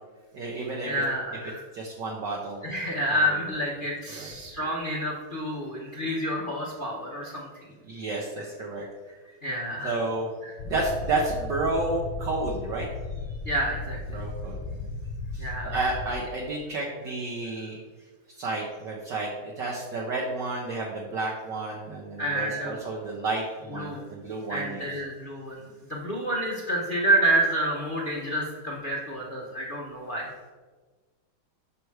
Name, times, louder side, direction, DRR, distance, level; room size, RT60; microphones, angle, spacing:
voice 1, 0.3-1.0 1.7-2.6 3.1-3.4 4.1-4.3 7.8-8.8 9.8-10.3 10.6-12.9 14.1-14.9 15.3-17.8 18.4-24.9, right 2 dB, 60° right, -2 dB, 1.4 m, -31 dB
voice 2, 0.9-1.6 2.6-7.7 9.4-10.0 13.4-14.0 15.4-15.8 22.2-22.8 23.7-24.0 24.5-25.6 25.9-30.3, right 1 dB, 50° left, -3 dB, 0.6 m, -28 dB
sound 1, 10.6-16.1, left 3 dB, 80° left, 1.5 m, -35 dB
6.5 x 5.9 x 4.7 m, 1.4 s
omnidirectional pair, 2.4 m